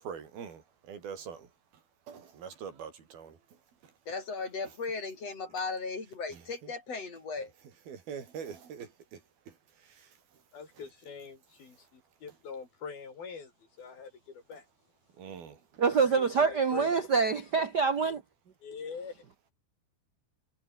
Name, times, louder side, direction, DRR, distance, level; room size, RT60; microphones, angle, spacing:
voice 1, 0.0-1.5 2.1-3.4 6.3-6.7 7.9-9.2 9.5-9.6 9.8-10.1 10.8-10.9 15.2-15.6, right 7 dB, 90° right, 5.6 m, -44 dB
voice 2, 4.1-7.5, left 4 dB, 45° left, 6.1 m, -36 dB
voice 3, 10.5-13.5 13.8-14.6 16.1-16.9 18.6-19.2, left 5 dB, 80° left, 6.9 m, -43 dB
voice 4, 15.8-18.2, right 5 dB, 70° right, 0.9 m, -26 dB
omnidirectional pair, 4.2 m